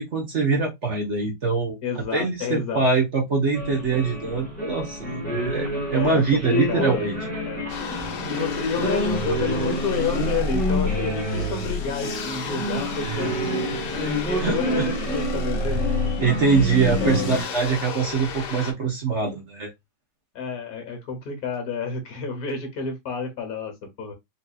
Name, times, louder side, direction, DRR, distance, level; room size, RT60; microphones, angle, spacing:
voice 1, 0.0-5.1 5.5-7.1 14.4-14.9 16.2-19.7, right 4 dB, 50° right, 0.9 m, -23 dB
voice 2, 1.8-2.8 5.9-7.1 7.4-7.7 8.2-13.6 14.3-15.9 16.8-17.8 20.3-23.7 24.0-24.1, left 5 dB, 60° left, 1.4 m, -30 dB
sound 1, 3.5-17.4, equal, 5° left, 0.9 m, -28 dB
sound 2, 7.7-18.7, left 4 dB, 80° left, 1.3 m, -31 dB
4.0 x 2.8 x 2.3 m
omnidirectional pair, 1.9 m